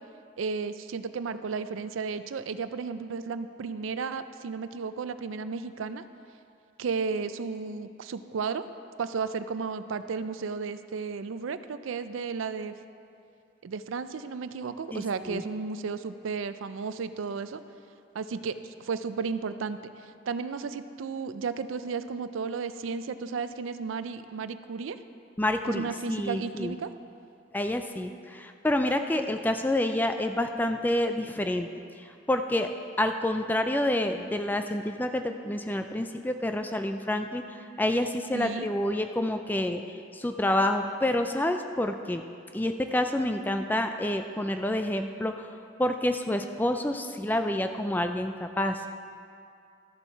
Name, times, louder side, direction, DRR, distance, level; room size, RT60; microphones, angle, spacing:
voice 1, 0.4-6.0 6.8-8.7 9.0-12.7 13.6-17.6 18.1-19.8 20.3-25.0 25.7-26.9 38.3-38.7, right 5 dB, 90° right, 12 dB, 0.4 m, -33 dB
voice 2, 14.9-15.4 25.4-26.7 27.5-31.7 32.0-32.7 33.0-39.8 40.1-42.2 42.5-45.5 45.8-48.9, left 1 dB, 10° left, 6 dB, 0.3 m, -28 dB
13.0 x 7.0 x 4.5 m, 2.5 s
head